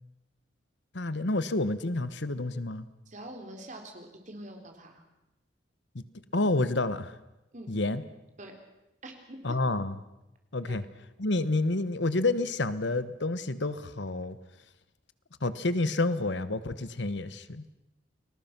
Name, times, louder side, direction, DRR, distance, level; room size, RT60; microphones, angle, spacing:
voice 1, 0.9-2.9 5.9-6.0 6.3-7.2 7.7-8.0 9.4-10.0 10.5-10.8 11.2-14.4 15.4-17.6, left 2 dB, 70° left, 14 dB, 1.2 m, -29 dB
voice 2, 3.1-5.0 7.5-7.7 8.4-8.6 9.0-9.6 10.7-10.8, right 1 dB, 40° right, 4 dB, 3.8 m, -44 dB
30.0 x 20.5 x 6.0 m, 0.95 s
head